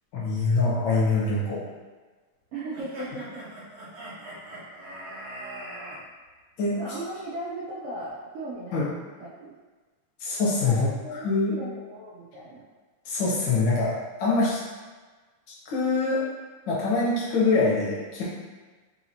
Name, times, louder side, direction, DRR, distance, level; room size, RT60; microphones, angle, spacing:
voice 1, 0.1-1.6 6.6-6.8 8.7-8.9 10.2-11.5 13.0-13.9 14.2-14.6 15.6-16.2 16.7-18.2, left 3 dB, 80° left, -7 dB, 1.0 m, -24 dB
voice 2, 2.5-3.4 6.8-8.9 9.4-9.5 10.6-12.6, right 1 dB, 80° right, -9 dB, 1.2 m, -37 dB
sound 1, 2.7-6.0, right 1 dB, 60° right, 1.9 m, -40 dB
4.7 x 2.8 x 2.7 m, 1.3 s
omnidirectional pair, 3.3 m